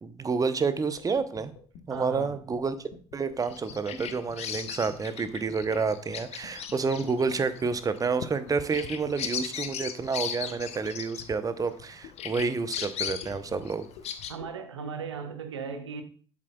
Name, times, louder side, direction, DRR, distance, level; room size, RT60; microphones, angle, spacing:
voice 1, 0.0-1.5 1.9-13.9, right 4 dB, 25° right, 0.7 m, -29 dB
sound 1, 1.0-14.5, left 6 dB, 65° left, 1.1 m, -49 dB
voice 2, 1.9-2.3 14.3-16.0, right 5 dB, 85° right, 0.8 m, -37 dB
Bird vocalization bird call bird song, 3.4-11.8 12.2-14.3, left 8 dB, 50° left, 0.7 m, -37 dB
7.5 x 7.4 x 2.3 m
figure-of-eight pair, 55°, 14 cm